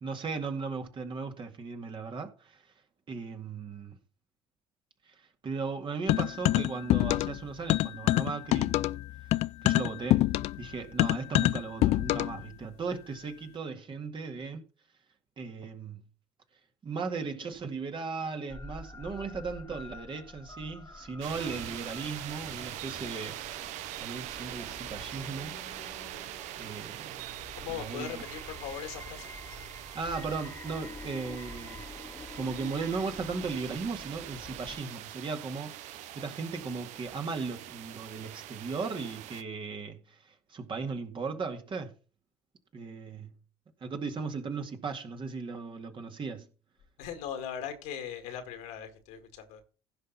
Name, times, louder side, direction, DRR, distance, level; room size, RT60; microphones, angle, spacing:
voice 1, 0.0-2.6 3.1-4.0 5.1-5.2 5.4-8.8 9.6-10.3 10.6-14.7 15.4-16.0 16.8-23.4 23.7-25.6 26.6-27.2 27.7-28.2 29.9-31.8 32.3-41.9 42.7-43.3 43.8-46.5, right 4 dB, 40° right, 2.1 m, -37 dB
sound 1, 6.1-7.4 7.7-12.4, left 16 dB, 55° left, 0.4 m, -26 dB
sound 2, 18.5-34.8, left 3 dB, 20° left, 1.5 m, -48 dB
sound 3, 21.2-39.4, right 13 dB, 60° right, 0.8 m, -43 dB
voice 2, 27.5-29.3 47.0-49.6, left 9 dB, 70° left, 2.1 m, -39 dB
16.0 x 5.7 x 4.1 m
hypercardioid pair, 60°, 13 cm